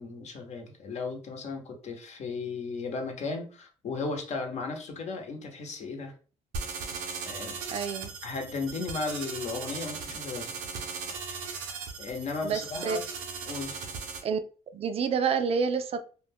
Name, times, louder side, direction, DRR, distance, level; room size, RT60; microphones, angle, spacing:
voice 1, 0.0-6.1 7.3-7.6 8.2-10.7 11.3-11.4 12.0-13.0 13.5-13.8, left 4 dB, 55° left, 0.8 m, -35 dB
sound 1, 6.5-14.2, right 5 dB, 90° right, 0.6 m, -38 dB
voice 2, 7.7-8.1 12.4-13.0 14.2-14.4 14.7-16.0, right 6 dB, 50° right, 0.4 m, -28 dB
2.3 x 2.2 x 3.4 m
supercardioid pair, 75°, 14 cm